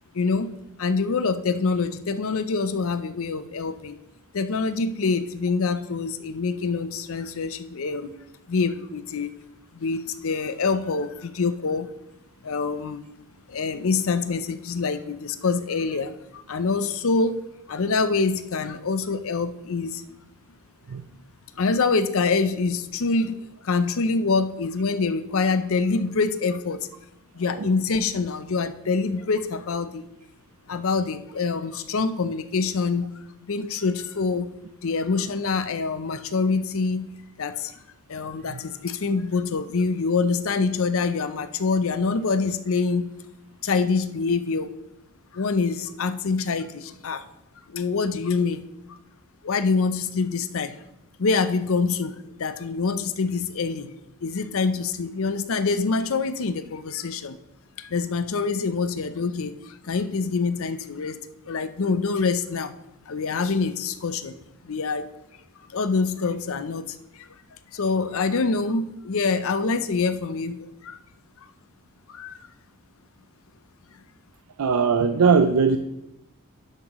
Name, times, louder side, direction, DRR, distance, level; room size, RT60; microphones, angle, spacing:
voice 1, 0.1-0.5 0.8-4.0 4.3-8.1 8.5-9.3 9.7-11.9 12.4-13.0 13.5-17.4 17.7-20.0 21.6-26.8 27.3-30.1 30.7-33.1 33.4-34.5 34.8-37.1 37.4-37.7 38.1-43.1 43.6-44.7 45.3-47.2 47.7-48.6 49.4-50.8 51.2-53.9 54.2-57.4 57.8-61.2 61.5-62.7 63.1-64.4 64.6-65.1 65.7-67.3 67.7-71.0 72.1-72.4, left 4 dB, 65° left, 11 dB, 0.6 m, -25 dB
voice 2, 74.6-75.8, right 5 dB, 85° right, 8 dB, 0.5 m, -19 dB
11.0 x 7.5 x 3.1 m, 0.91 s
head